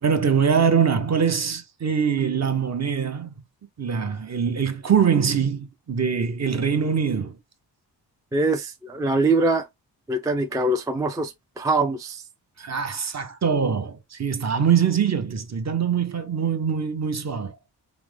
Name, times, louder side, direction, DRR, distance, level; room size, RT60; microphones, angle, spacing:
voice 1, 0.0-3.3 3.8-7.4 12.6-17.6, right 7 dB, 40° right, 0.7 m, -23 dB
voice 2, 8.3-9.7 10.1-12.2, right 2 dB, 10° right, 0.3 m, -23 dB
4.9 x 2.0 x 3.2 m
wide cardioid pair, 170°, 42 cm